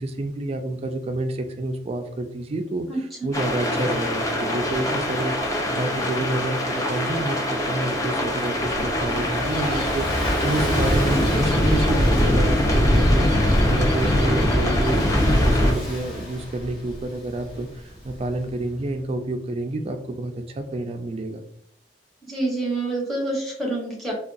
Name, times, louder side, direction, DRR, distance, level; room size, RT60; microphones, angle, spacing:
voice 1, 0.0-21.4, right 2 dB, 35° right, 6 dB, 0.3 m, -29 dB
voice 2, 2.9-3.3 22.2-24.1, right 2 dB, ahead, -3 dB, 1.0 m, -27 dB
sound 1, 3.3-15.7, left 1 dB, 20° left, 0.6 m, -22 dB
Gull seagull / Waves surf, 8.5-18.8, equal, 55° left, 1.3 m, -31 dB
3.6 x 2.3 x 2.5 m, 0.67 s
head